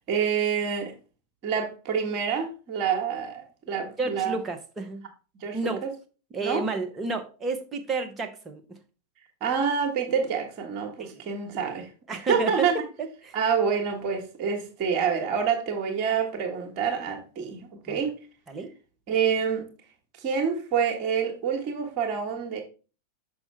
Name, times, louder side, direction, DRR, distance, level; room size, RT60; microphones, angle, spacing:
voice 1, 0.1-0.9 1.4-4.4 5.4-5.6 6.4-6.6 9.4-12.7 13.3-18.1 19.1-19.6 20.2-22.6, right 7 dB, 40° right, 1.6 m, -27 dB
voice 2, 4.0-5.0 5.5-5.9 6.3-8.8 11.0-11.2 12.1-13.4 17.9-18.0 18.5-18.7, right 3 dB, 20° right, 1.2 m, -31 dB
6.3 x 6.1 x 3.3 m
figure-of-eight pair, 90°, 0 cm